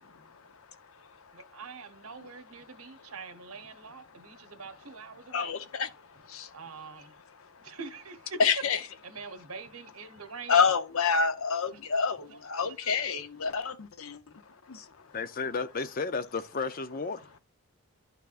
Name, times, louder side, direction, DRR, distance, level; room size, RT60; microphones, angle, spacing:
voice 1, 1.3-5.6 6.5-7.1 7.6-8.4 9.0-10.7 11.7-11.8 12.3-12.9, right 4 dB, 90° right, 1.1 m, -44 dB
voice 2, 5.3-5.9 6.3-6.5 8.4-8.8 10.5-14.2 14.7-14.8, left 5 dB, 75° left, 0.7 m, -27 dB
voice 3, 15.1-17.3, left 4 dB, 40° left, 0.5 m, -33 dB
11.5 x 4.6 x 2.5 m
head